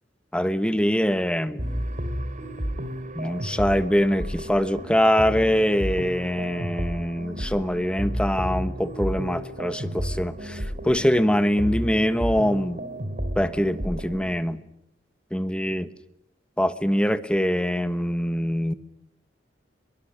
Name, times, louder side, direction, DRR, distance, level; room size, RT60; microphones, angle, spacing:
voice 1, 0.3-1.7 3.1-12.8 13.4-14.6 15.3-15.9 16.6-18.7, equal, 5° left, 12 dB, 1.3 m, -23 dB
sound 1, 1.6-14.4, equal, 45° right, 2.9 m, -32 dB
24.0 x 22.5 x 10.0 m, 0.82 s
head